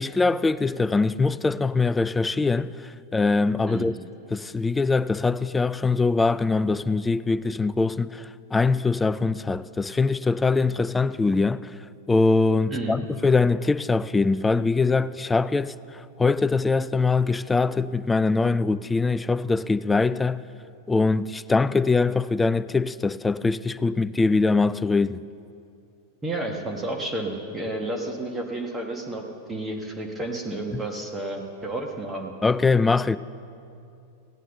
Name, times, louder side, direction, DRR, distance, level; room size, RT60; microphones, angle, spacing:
voice 1, 0.0-3.9 4.3-11.7 12.1-20.4 20.9-25.2 30.7-30.8 32.4-33.2, left 3 dB, 10° left, 0.3 m, -23 dB
voice 2, 26.2-32.3, right 2 dB, 15° right, 1.4 m, -31 dB
16.0 x 9.9 x 6.9 m
figure-of-eight pair, 90°, 0 cm